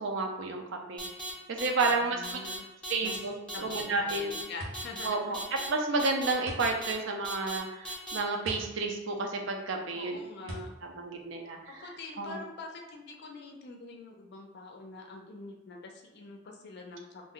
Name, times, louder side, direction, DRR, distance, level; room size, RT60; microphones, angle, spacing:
voice 1, 0.0-2.4 2.9-4.4 5.0-10.2 10.4-11.6 12.2-12.4, right 3 dB, 60° right, 2 dB, 0.4 m, -31 dB
sound 1, 1.0-1.3 1.6-1.9 2.2-2.6 2.8-3.2 3.5-3.8 4.1-4.4 4.7-5.1 5.3-5.7 6.0-6.3 6.6-6.9 7.2-7.6 7.8-8.2, right 1 dB, 5° left, 0.6 m, -37 dB
voice 2, 1.9-2.6 3.0-3.2 3.5-5.5 9.9-10.7 11.7-17.3, left 3 dB, 50° left, 2 dB, 0.5 m, -45 dB
sound 2, 4.6-12.1, equal, 75° right, 0.8 m, -45 dB
2.6 x 2.1 x 3.7 m, 1.0 s
head